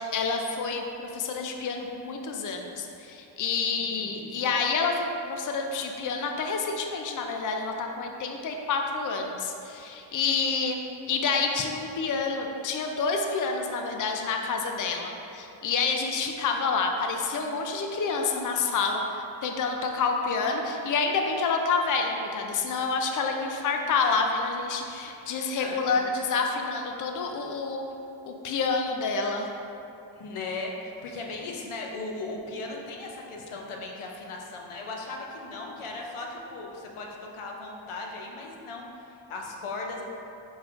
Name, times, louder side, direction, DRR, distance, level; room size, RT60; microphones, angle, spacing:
voice 1, 0.1-0.8 1.1-10.8 11.1-27.8 28.3-29.5, left 4 dB, 40° left, 3 dB, 0.5 m, -28 dB
voice 2, 3.8-4.4 20.3-20.4 25.3-26.0 30.2-38.9 39.3-40.0, left 3 dB, 85° left, 0 dB, 0.6 m, -37 dB
4.4 x 4.0 x 2.4 m, 2.7 s
cardioid pair, 45°, 49 cm